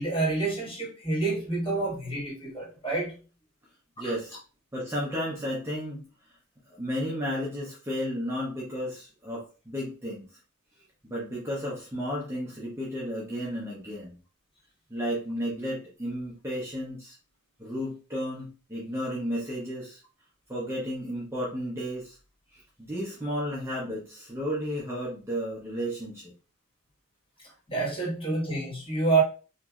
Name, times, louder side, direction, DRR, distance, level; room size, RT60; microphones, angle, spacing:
voice 1, 0.0-3.1 4.0-4.1 27.7-29.2, right 3 dB, 25° left, 1.3 m, -28 dB
voice 2, 4.0-4.4 4.7-6.0 6.7-10.3 11.0-14.2 14.9-17.2 17.6-20.0 20.5-22.2 22.5-26.3, equal, 10° right, 0.6 m, -33 dB
2.9 x 2.5 x 2.3 m
head